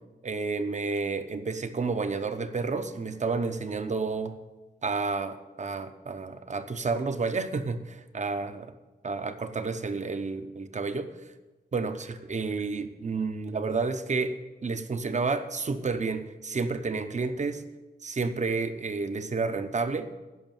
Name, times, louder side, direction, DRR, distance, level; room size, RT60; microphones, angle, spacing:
voice 1, 0.2-4.4 4.8-8.7 9.0-11.1 11.7-17.6 18.0-20.1, right 4 dB, 40° right, 10 dB, 0.8 m, -30 dB
11.0 x 6.2 x 9.1 m, 1.2 s
wide cardioid pair, 145°, 18 cm